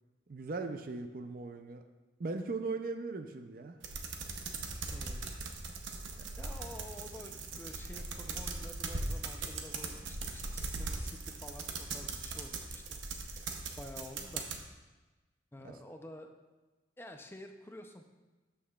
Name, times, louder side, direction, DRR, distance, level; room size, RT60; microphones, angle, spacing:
voice 1, 0.3-1.8 2.2-3.8 15.6-15.7, right 3 dB, 50° right, 7 dB, 0.5 m, -38 dB
sound 1, 3.8-14.6, right 3 dB, 85° right, 0.8 m, -40 dB
voice 2, 4.9-5.3 6.4-13.0 13.3-14.5 15.5-16.3 17.0-18.1, left 1 dB, 10° left, 5 dB, 0.5 m, -50 dB
12.5 x 5.7 x 2.3 m, 1.2 s
head